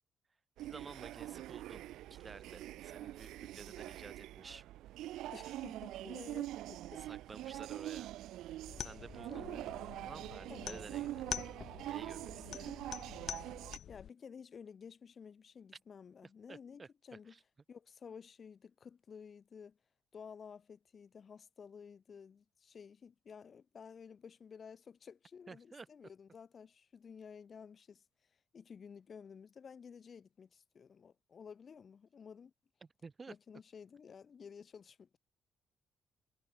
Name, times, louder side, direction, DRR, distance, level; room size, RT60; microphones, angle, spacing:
voice 1, 0.6-1.8 2.1-4.6 7.0-8.1 8.8-9.4 10.0-11.3 11.9-12.7 16.5-16.9 17.2-17.4 25.5-25.9 33.0-33.3, right 4 dB, 30° right, 4.8 m, -52 dB
sound 1, 0.6-13.8, right 14 dB, 85° right, 3.0 m, -44 dB
voice 2, 5.3-7.0 9.3-9.7 10.5-10.8 12.5-12.8 13.9-17.3 17.7-19.8 20.1-28.0 28.5-32.5 33.3-35.2, left 6 dB, 45° left, 3.2 m, -53 dB
sound 2, 8.7-14.1, left 9 dB, 65° left, 1.4 m, -46 dB
cardioid pair, 90°, 0 cm